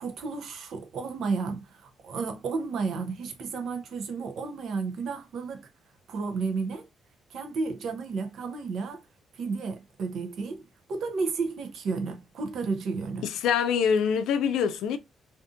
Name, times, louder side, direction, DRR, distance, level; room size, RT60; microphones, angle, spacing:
voice 1, 0.0-5.7 6.1-6.9 7.3-9.0 9.3-13.3, right 4 dB, 70° right, 0.6 m, -32 dB
voice 2, 13.2-15.0, left 7 dB, 85° left, 0.4 m, -25 dB
2.5 x 2.4 x 2.4 m
cardioid pair, 90°, 0 cm